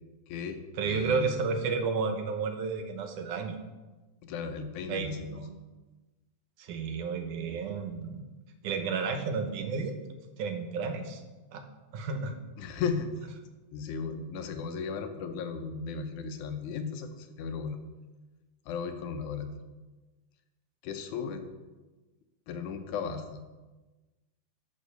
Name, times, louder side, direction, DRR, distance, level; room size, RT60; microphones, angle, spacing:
voice 1, 0.3-1.3 4.2-5.5 12.6-13.1 13.7-17.8 18.7-19.5 20.8-21.4 22.5-23.4, left 5 dB, 80° left, 7 dB, 2.3 m, -35 dB
voice 2, 0.8-3.6 4.9-5.5 6.6-8.2 8.6-10.0 10.4-11.2 11.5-11.6 11.9-12.4, right 5 dB, 85° right, 6 dB, 2.5 m, -32 dB
10.0 x 5.4 x 6.7 m, 1.2 s
omnidirectional pair, 3.5 m